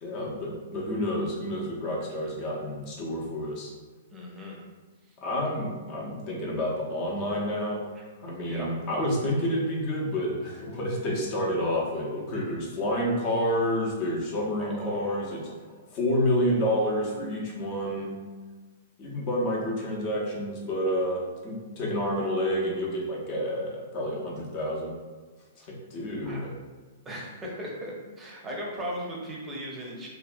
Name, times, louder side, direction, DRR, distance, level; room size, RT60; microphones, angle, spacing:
voice 1, 0.0-3.7 5.2-7.8 8.2-15.4 15.9-18.1 19.0-24.9 25.6-26.5, equal, 40° left, -2 dB, 0.7 m, -29 dB
voice 2, 4.1-4.6 8.0-8.1 8.4-8.7 14.6-15.5 25.6-25.7 26.2-26.5 27.0-30.1, equal, 15° right, -3 dB, 0.6 m, -38 dB
2.7 x 2.2 x 2.5 m, 1.3 s
hypercardioid pair, 135°, 0 cm